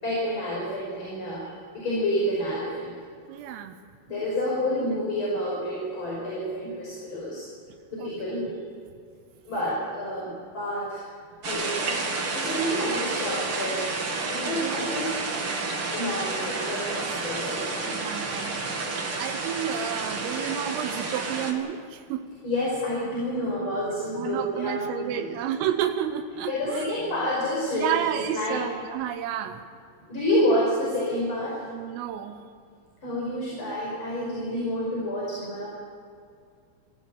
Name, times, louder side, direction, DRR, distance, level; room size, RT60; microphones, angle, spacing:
voice 1, 0.0-2.9 4.1-7.4 7.9-8.6 9.5-11.1 11.4-13.8 14.3-15.1 15.9-18.7 19.1-19.2 22.4-25.3 26.5-28.6 30.1-31.5 33.0-35.7, equal, 25° left, -5 dB, 5.7 m, -29 dB
voice 2, 3.3-3.8 8.0-8.1 14.4-14.9 15.5-15.8 17.7-18.7 19.2-22.2 24.0-26.9 27.7-29.6 31.7-32.4, right 10 dB, 90° right, 7 dB, 3.7 m, -31 dB
sound 1, 11.4-21.5, right 3 dB, 50° right, 1.6 m, -30 dB
25.0 x 15.5 x 8.4 m, 2.3 s
omnidirectional pair, 5.7 m